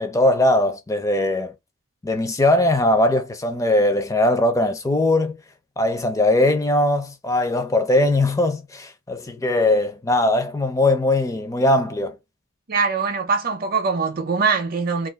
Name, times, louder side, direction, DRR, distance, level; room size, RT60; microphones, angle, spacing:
voice 1, 0.0-1.5 2.0-5.4 5.8-12.2, left 1 dB, 15° left, 0.4 m, -20 dB
voice 2, 12.7-15.1, right 5 dB, 45° right, 0.5 m, -22 dB
2.4 x 2.3 x 3.4 m
head